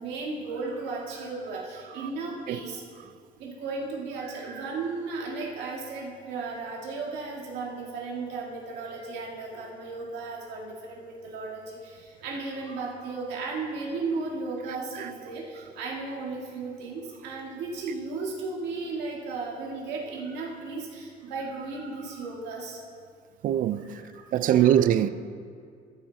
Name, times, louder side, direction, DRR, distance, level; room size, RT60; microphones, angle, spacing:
voice 1, 0.0-2.8 3.4-12.0 12.2-22.8 23.8-23.9 24.3-24.8, right 3 dB, 85° right, 2.0 m, -35 dB
voice 2, 23.4-23.8 24.3-25.1, right 11 dB, 55° right, 0.4 m, -21 dB
13.0 x 6.3 x 4.1 m
cardioid pair, 110°, 17 cm